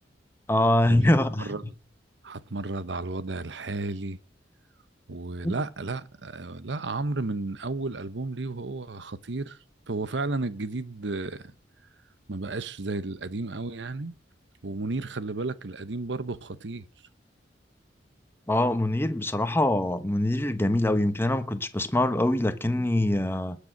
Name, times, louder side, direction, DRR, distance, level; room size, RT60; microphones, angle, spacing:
voice 1, 0.5-1.5 5.4-5.5 18.5-23.6, left 1 dB, 15° left, 1.1 m, -24 dB
voice 2, 2.2-4.2 5.1-9.6 9.9-11.5 12.3-14.1 14.6-16.9, right 3 dB, 75° right, 0.9 m, -33 dB
20.0 x 6.7 x 6.5 m
head